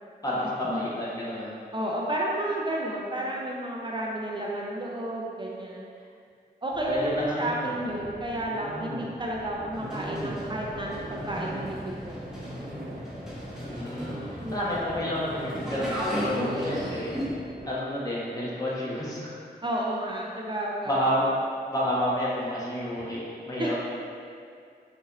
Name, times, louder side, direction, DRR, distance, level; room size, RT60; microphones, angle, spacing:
voice 1, 0.2-1.6 6.9-7.4 7.8-8.1 13.6-17.2 17.7-19.4 20.9-21.3 21.7-23.2 23.4-23.7, equal, 20° left, -8 dB, 1.0 m, -30 dB
voice 2, 1.7-5.9 6.6-12.2 14.4-14.8 16.3-16.8 19.6-21.0 23.6-23.7, right 1 dB, 30° right, -3 dB, 0.4 m, -31 dB
sound 1, 6.7-17.7, right 1 dB, 70° right, 0.7 m, -40 dB
sound 2, 9.7-17.3, equal, 5° right, 0.9 m, -36 dB
4.0 x 2.5 x 2.9 m, 2.3 s
cardioid pair, 60°, 17 cm